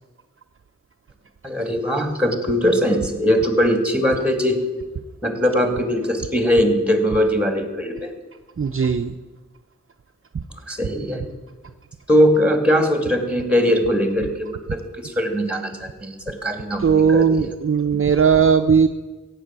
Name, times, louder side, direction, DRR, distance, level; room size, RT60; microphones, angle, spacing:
voice 1, 1.4-4.6 5.2-8.1 10.7-11.3 12.1-17.5, equal, 5° right, 6 dB, 2.5 m, -20 dB
voice 2, 8.6-9.1 16.8-18.9, right 6 dB, 45° right, 6 dB, 0.6 m, -17 dB
15.0 x 9.2 x 7.6 m, 1.2 s
wide cardioid pair, 65°, 30 cm